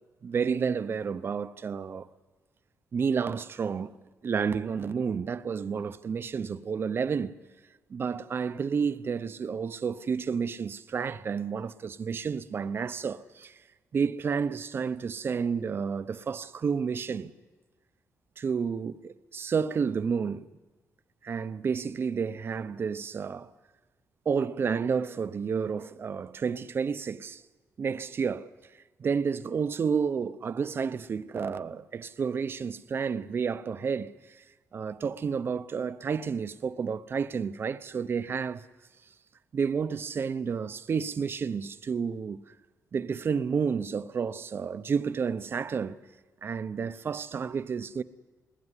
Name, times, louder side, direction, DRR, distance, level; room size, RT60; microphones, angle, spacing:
voice 1, 0.2-2.1 2.9-3.9 4.2-7.4 7.9-13.6 13.9-17.3 18.4-20.4 21.2-23.5 24.3-27.4 27.8-28.5 29.0-34.4 34.7-38.6 39.5-42.4 42.9-46.0 46.4-48.0, right 6 dB, 40° right, 0.8 m, -30 dB
20.5 x 18.0 x 9.8 m
cardioid pair, 125°, 6 cm